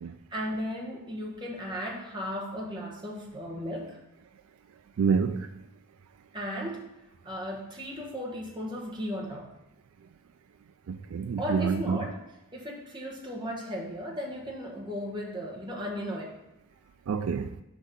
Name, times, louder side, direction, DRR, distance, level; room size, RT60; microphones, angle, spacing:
voice 1, 0.3-4.0 6.3-6.9 7.2-9.6 11.4-12.2 12.5-16.4, equal, 20° right, 1.3 m, -36 dB
voice 2, 5.0-5.5 10.9-12.0 17.1-17.6, right 6 dB, 70° right, 0.3 m, -27 dB
6.1 x 5.1 x 5.3 m
head